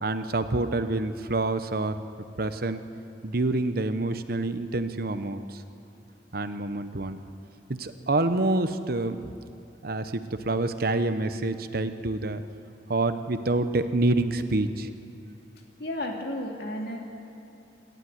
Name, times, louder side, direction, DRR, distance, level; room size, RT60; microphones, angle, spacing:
voice 1, 0.0-1.9 2.4-2.8 3.2-5.6 6.3-7.2 7.7-9.2 9.8-12.4 12.9-14.9, right 2 dB, 60° right, 10 dB, 1.0 m, -27 dB
voice 2, 15.8-17.0, left 1 dB, 65° left, 0 dB, 2.7 m, -32 dB
27.0 x 12.0 x 9.6 m, 2.8 s
head